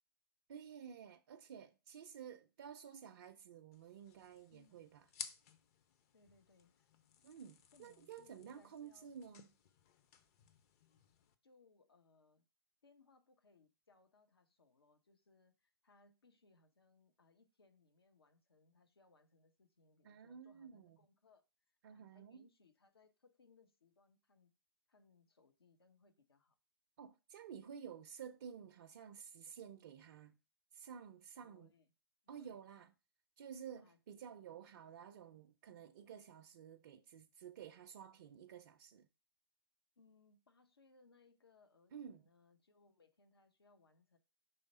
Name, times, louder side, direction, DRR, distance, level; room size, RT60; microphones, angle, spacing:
voice 1, 0.5-5.0 7.2-9.5 20.0-21.0 21.8-22.5 27.0-30.4 30.7-31.7 32.3-32.9 33.4-39.1 41.9-42.3, right 8 dB, 50° right, 0.5 m, -53 dB
sound 1, 3.7-11.3, left 8 dB, 40° left, 0.7 m, -56 dB
voice 2, 4.5-4.9 6.1-6.9 7.7-9.1 11.4-12.5 12.8-24.6 24.9-26.6 31.4-31.9 32.2-32.6 33.8-34.0 40.0-44.2, left 4 dB, 80° left, 1.0 m, -70 dB
5.5 x 3.4 x 5.3 m
figure-of-eight pair, 120°, 13 cm